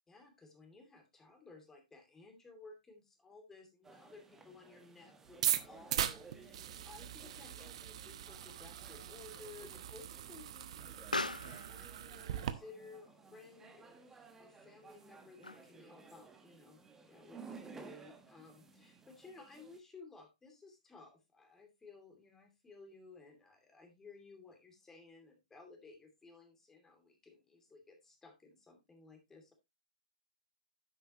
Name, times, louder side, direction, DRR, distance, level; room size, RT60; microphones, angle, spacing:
voice 1, 0.1-16.8 17.1-29.5, left 3 dB, 10° left, 5 dB, 2.6 m, -57 dB
sound 1, 3.8-19.8, right 4 dB, 10° right, 1.3 m, -57 dB
sound 2, 5.3-12.5, right 11 dB, 50° right, 0.9 m, -40 dB
Explosion, 7.0-15.9, left 2 dB, 90° left, 0.6 m, -47 dB
10.0 x 8.1 x 2.8 m, 0.21 s
figure-of-eight pair, 120°, 4 cm